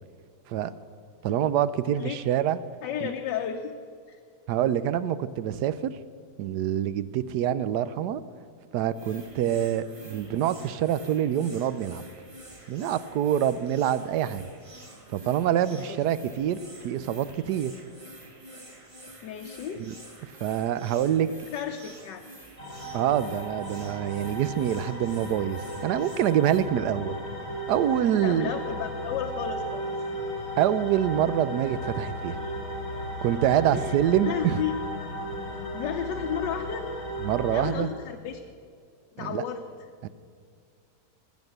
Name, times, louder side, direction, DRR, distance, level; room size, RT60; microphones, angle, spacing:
voice 1, 1.2-2.6 3.0-3.1 4.5-5.9 6.4-8.2 8.7-12.0 12.7-14.5 15.1-16.6 16.8-17.7 19.8-19.9 20.4-21.3 22.9-27.2 27.7-28.5 30.6-32.4 33.2-34.6 37.2-37.9 39.2-39.4 40.0-40.1, right 10 dB, 75° right, 14 dB, 1.1 m, -26 dB
voice 2, 2.8-3.7 4.1-4.2 15.7-16.0 19.2-19.8 21.5-22.2 28.1-29.8 33.7-34.0 34.2-34.7 35.7-36.9 37.5-38.4 39.1-39.6, left 9 dB, 90° left, 4 dB, 1.4 m, -33 dB
sound 1, 8.9-26.6, right 1 dB, 20° right, 1.2 m, -48 dB
sound 2, 22.6-37.7, equal, 65° left, 3.5 m, -35 dB
19.5 x 7.2 x 8.0 m, 2.1 s
omnidirectional pair, 1.9 m